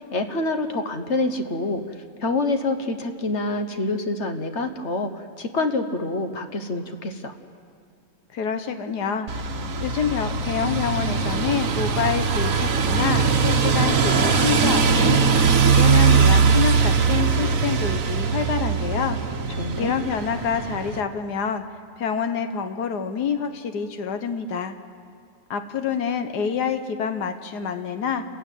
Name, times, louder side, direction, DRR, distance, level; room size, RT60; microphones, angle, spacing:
voice 1, 0.0-1.8 2.2-7.3 19.6-19.9, left 2 dB, 45° left, 7 dB, 1.4 m, -26 dB
voice 2, 8.3-9.3 9.8-15.2 15.6-19.2 19.7-21.6 22.0-24.7 25.5-28.2, left 6 dB, 85° left, 8 dB, 1.6 m, -27 dB
sound 1, 9.3-21.0, right 5 dB, 60° right, 1.5 m, -21 dB
29.0 x 15.5 x 9.2 m, 2.3 s
omnidirectional pair, 1.7 m